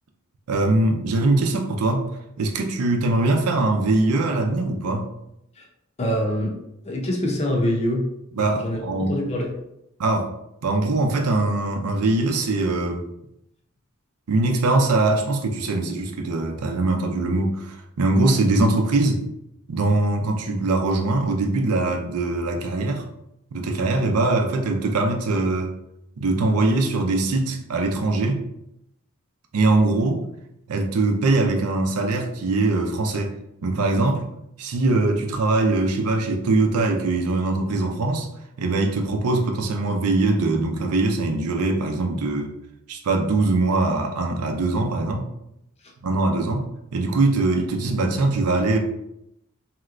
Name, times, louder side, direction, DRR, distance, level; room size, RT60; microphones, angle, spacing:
voice 1, 0.5-2.1 2.4-5.1 8.4-9.2 10.0-10.3 10.6-13.0 14.3-19.2 19.7-23.0 23.5-25.8 26.2-28.4 29.5-30.2 30.7-33.3 33.6-34.2 34.6-38.3 38.6-42.5 42.9-45.3 46.0-46.7 46.9-48.8, right 2 dB, 85° right, 3 dB, 0.5 m, -22 dB
voice 2, 6.0-6.5 6.8-8.0 8.4-9.5 45.8-45.9, equal, 30° left, 0 dB, 0.6 m, -25 dB
3.2 x 2.8 x 2.4 m, 0.82 s
head